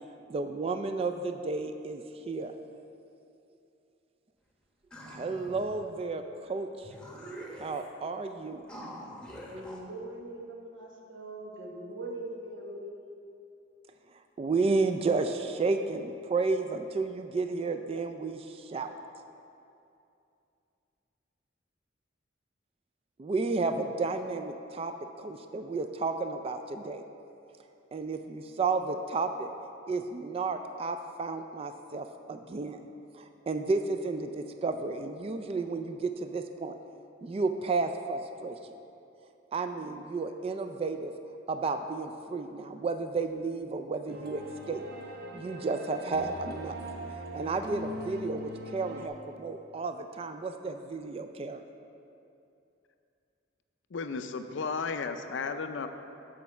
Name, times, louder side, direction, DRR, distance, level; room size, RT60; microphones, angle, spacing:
voice 1, 0.3-2.5 5.1-6.9 7.6-8.6 14.4-18.9 23.2-27.0 27.9-29.5 29.9-32.8 33.1-36.8 37.2-38.6 39.5-41.1 41.5-44.8 45.3-46.8 47.1-51.6, right 3 dB, 30° right, 7 dB, 0.3 m, -32 dB
sound 1, 4.9-5.8 6.5-6.6 6.8-8.0 8.7-9.8, right 1 dB, 5° left, 0.9 m, -45 dB
voice 2, 9.4-13.2, right 1 dB, 90° right, 0 dB, 1.2 m, -41 dB
sound 2, 44.1-49.1, equal, 55° right, 0.7 m, -41 dB
voice 3, 53.9-55.9, left 4 dB, 75° left, 8 dB, 0.5 m, -34 dB
6.3 x 5.5 x 7.0 m, 2.7 s
head